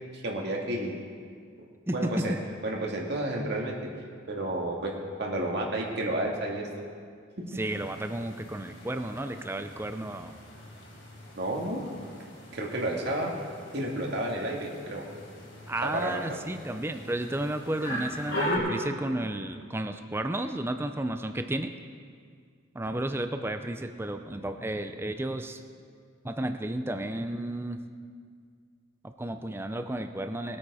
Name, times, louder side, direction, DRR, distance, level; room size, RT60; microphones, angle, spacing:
voice 1, 0.1-1.0 1.9-2.3 2.6-3.8 4.3-4.9 5.2-6.7 7.4-7.6 11.3-11.8 12.5-13.3 13.7-15.0 15.8-16.4, right 1 dB, 55° right, -1 dB, 2.1 m, -31 dB
voice 2, 1.9-2.4 7.5-10.3 15.7-21.7 22.7-25.6 26.2-27.8 29.0-30.6, right 1 dB, 10° right, 7 dB, 0.5 m, -32 dB
sound 1, 7.6-18.6, left 1 dB, 60° left, 4.0 m, -40 dB
20.5 x 8.7 x 4.9 m, 2.1 s
head